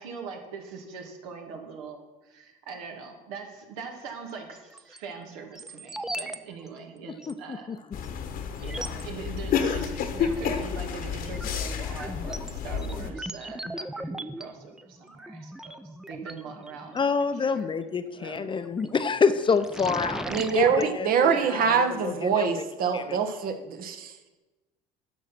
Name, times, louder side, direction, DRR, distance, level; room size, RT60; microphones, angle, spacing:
voice 1, 0.0-7.7 8.6-17.0 17.3-17.7 18.1-18.5 21.3-21.8, right 5 dB, 80° right, 3 dB, 2.0 m, -42 dB
sound 1, 4.5-5.0 5.5-6.4 6.6-6.7 7.2-7.3 8.0-8.1 8.6-9.0 10.3-10.6 11.1-17.0 18.6-19.0 19.3-20.9, right 1 dB, 5° right, 0.6 m, -38 dB
voice 2, 7.3-7.8 16.9-20.3 20.5-22.6 22.9-23.2, left 5 dB, 30° left, 11 dB, 0.8 m, -27 dB
sound 2, 7.9-13.1, left 7 dB, 60° left, 1.3 m, -30 dB
voice 3, 20.3-24.4, right 6 dB, 60° right, 7 dB, 1.3 m, -25 dB
10.5 x 6.3 x 6.1 m, 1.1 s
supercardioid pair, 80°, 17 cm